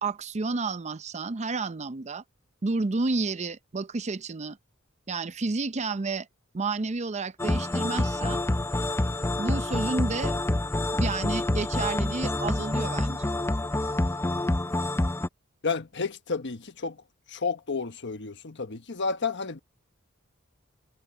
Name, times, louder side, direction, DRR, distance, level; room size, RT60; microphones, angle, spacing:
voice 1, 0.0-2.2 2.6-4.6 5.1-6.3 6.5-8.4 9.4-10.4 10.9-13.3, right 3 dB, 35° right, 0.6 m, -30 dB
sound 1, 7.4-15.3, left 2 dB, 10° left, 0.5 m, -27 dB
voice 2, 15.6-17.0 17.3-19.6, left 4 dB, 60° left, 1.3 m, -31 dB
head